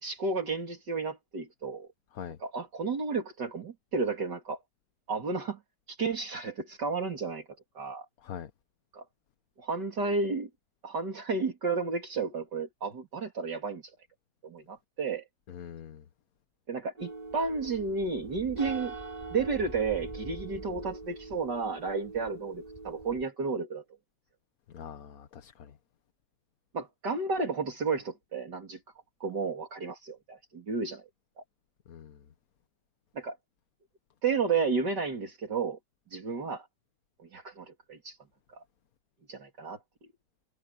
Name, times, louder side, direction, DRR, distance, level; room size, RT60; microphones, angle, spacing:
voice 1, 0.0-1.9 2.4-4.6 5.1-5.6 5.9-7.5 7.8-8.1 8.9-9.0 9.6-10.5 10.8-13.9 14.4-15.2 16.7-18.9 19.3-23.8 26.7-28.8 29.2-31.0 33.2-33.4 34.2-35.8 36.1-36.7 37.3-38.2 38.5-38.6 39.3-39.8, right 4 dB, 65° right, 3.6 m, -32 dB
voice 2, 15.5-16.0 24.7-25.7 31.9-32.2, left 8 dB, 55° left, 1.4 m, -43 dB
sound 1, 17.0-23.3, right 3 dB, 20° right, 3.4 m, -42 dB
omnidirectional pair, 2.0 m